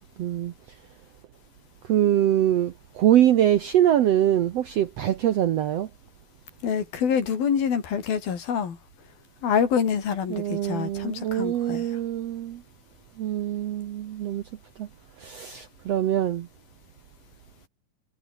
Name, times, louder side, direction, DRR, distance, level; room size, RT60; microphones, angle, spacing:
voice 1, 0.2-0.5 1.8-5.9 10.3-12.6 13.2-14.4 14.8-14.9 15.2-16.5, right 11 dB, 75° right, 1.5 m, -23 dB
voice 2, 6.6-8.8 9.4-11.9, left 7 dB, 80° left, 5.2 m, -26 dB
omnidirectional pair, 4.2 m